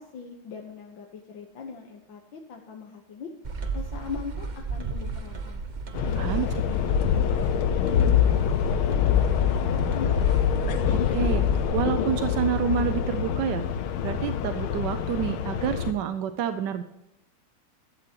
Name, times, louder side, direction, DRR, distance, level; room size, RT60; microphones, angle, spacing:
voice 1, 0.0-3.3 3.7-5.6 6.1-10.2, left 5 dB, 65° left, 1 dB, 1.9 m, -41 dB
sound 1, 3.4-11.7, right 4 dB, 85° right, 0.4 m, -34 dB
sound 2, 5.9-15.9, left 9 dB, 80° left, 1.7 m, -25 dB
voice 2, 6.2-6.5 10.9-13.7 14.0-16.8, right 9 dB, 70° right, 10 dB, 1.1 m, -28 dB
15.0 x 12.5 x 3.0 m, 0.93 s
omnidirectional pair, 2.3 m